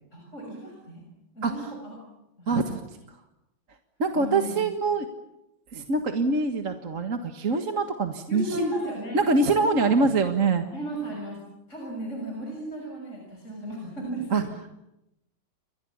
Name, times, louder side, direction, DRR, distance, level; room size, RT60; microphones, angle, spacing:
voice 1, 0.1-1.0 1.3-2.0 2.4-2.8 4.1-4.6 8.3-9.2 9.5-10.1 10.7-11.4 11.7-14.4, right 1 dB, 35° left, 0 dB, 6.9 m, -35 dB
voice 2, 2.5-2.8 4.0-5.1 5.7-8.7 9.1-10.7 14.3-14.4, right 3 dB, 45° right, 6 dB, 1.9 m, -24 dB
30.0 x 25.0 x 7.3 m, 0.87 s
omnidirectional pair, 2.1 m